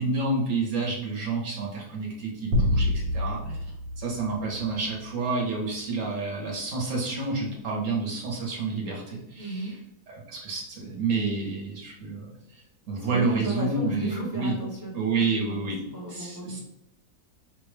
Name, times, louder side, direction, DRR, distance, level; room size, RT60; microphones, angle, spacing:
voice 1, 0.0-3.5 4.0-9.8 10.1-12.6 12.9-14.6 14.9-16.6, right 3 dB, 45° right, -2 dB, 1.4 m, -29 dB
sound 1, 2.5-5.1, left 1 dB, 85° right, 1.6 m, -28 dB
voice 2, 9.4-9.7 13.0-14.9 15.3-16.6, right 2 dB, 10° right, -4 dB, 1.0 m, -35 dB
5.5 x 2.6 x 3.3 m, 0.82 s
omnidirectional pair, 2.0 m